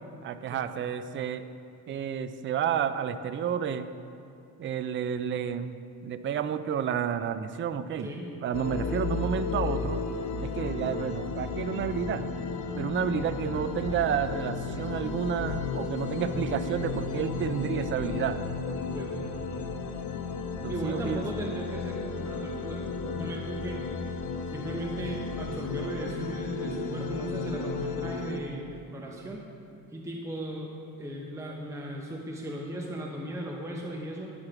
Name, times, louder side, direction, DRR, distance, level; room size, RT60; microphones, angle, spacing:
voice 1, 0.2-1.5 1.9-3.9 4.6-5.8 6.0-8.1 8.4-10.0 10.4-12.2 12.8-18.4 20.6-21.3, right 8 dB, 35° right, 11 dB, 0.4 m, -30 dB
voice 2, 8.0-8.3 18.9-19.4 20.7-23.8 24.5-29.4 29.9-30.7 31.0-34.3, right 1 dB, 10° right, -1 dB, 0.8 m, -37 dB
sound 1, 8.5-28.4, left 4 dB, 75° left, 0.8 m, -33 dB
10.5 x 4.9 x 5.9 m, 2.7 s
cardioid pair, 105°, 36 cm